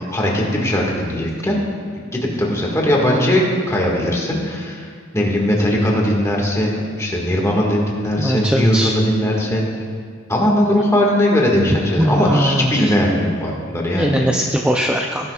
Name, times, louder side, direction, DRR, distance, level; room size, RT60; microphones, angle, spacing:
voice 1, 0.1-1.6 2.0-4.9 5.1-9.7 10.3-14.2, left 1 dB, 15° left, -2 dB, 1.8 m, -19 dB
voice 2, 8.2-8.9 12.0-12.9 13.9-15.3, equal, 5° right, 2 dB, 0.4 m, -20 dB
17.5 x 10.5 x 2.4 m, 2.1 s
head